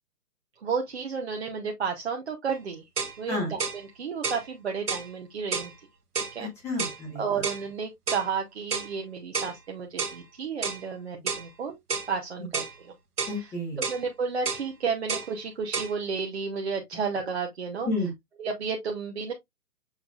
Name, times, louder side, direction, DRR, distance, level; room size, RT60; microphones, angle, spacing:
voice 1, 0.6-2.8 3.2-5.7 6.3-6.5 7.2-11.8 12.1-12.9 13.3-13.5 13.9-17.9 18.4-19.3, right 5 dB, 45° right, 0.9 m, -32 dB
sound 1, 2.5-2.6 3.0-3.2 3.6-3.8 4.2-4.4 4.9-5.1 5.5-5.7 6.1-6.4 6.8-7.0 7.4-7.6 8.1-8.3 8.7-8.9 9.3-9.5 10.0-10.2 10.6-10.8 11.3-11.5 11.9-12.1 12.5-12.7 13.2-13.4 13.8-14.0 14.4-14.7 15.1-15.3 15.7-15.9, right 5 dB, 70° right, 1.2 m, -30 dB
voice 2, 6.4-7.4 13.3-13.8 17.9-18.1, left 2 dB, 5° left, 0.9 m, -31 dB
6.4 x 3.4 x 2.3 m
figure-of-eight pair, 135°, 47 cm